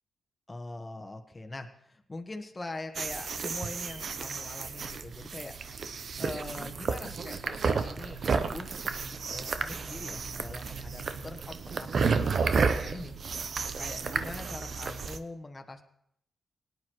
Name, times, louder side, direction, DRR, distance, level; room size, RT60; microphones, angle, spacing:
voice 1, 0.5-5.6 6.2-8.8 9.3-13.4 13.7-15.8, left 2 dB, 30° left, 4 dB, 1.3 m, -43 dB
sound 1, 2.9-15.2, right 5 dB, 65° right, 0.7 m, -32 dB
18.0 x 9.7 x 3.1 m, 0.74 s
supercardioid pair, 50°, 0 cm